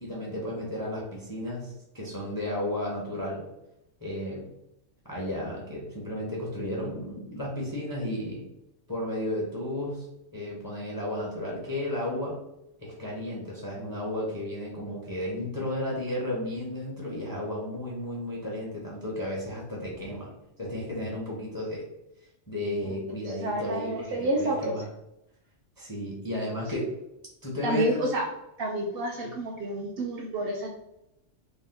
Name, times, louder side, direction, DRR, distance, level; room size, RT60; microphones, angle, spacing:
voice 1, 0.0-3.4 4.0-4.4 5.0-8.5 8.9-10.1 10.3-12.4 12.8-21.8 22.5-24.9 25.8-26.9 27.4-28.0, left 1 dB, 20° left, -5 dB, 0.7 m, -33 dB
voice 2, 23.4-24.7 26.7-26.8 27.6-28.3 28.6-30.7, right 1 dB, 65° right, 1 dB, 0.6 m, -29 dB
2.8 x 2.1 x 3.5 m, 0.85 s
omnidirectional pair, 1.3 m